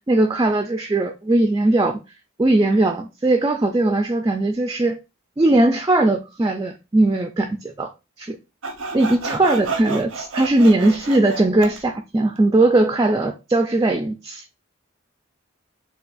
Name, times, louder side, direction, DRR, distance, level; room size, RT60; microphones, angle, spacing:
voice 1, 0.1-2.0 2.4-5.0 5.4-7.9 8.2-8.4 8.9-14.4, right 2 dB, 20° right, 0.3 m, -19 dB
Sawing, 8.6-11.8, right 4 dB, 85° right, 0.7 m, -30 dB
6.8 x 2.4 x 2.4 m
head